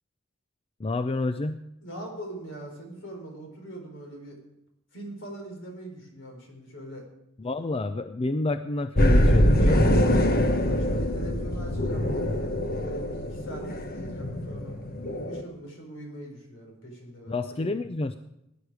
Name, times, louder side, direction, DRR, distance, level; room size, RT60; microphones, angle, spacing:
voice 1, 0.8-1.6 7.4-10.0 17.3-18.2, left 2 dB, 30° left, 10 dB, 0.5 m, -29 dB
voice 2, 1.8-4.4 4.9-7.1 10.4-12.5 12.8-14.7 15.1-17.7, right 1 dB, 65° left, 2 dB, 4.4 m, -42 dB
Water Running Underground, 9.0-15.4, equal, 50° left, 1.2 m, -24 dB
18.0 x 10.5 x 4.9 m, 0.85 s
head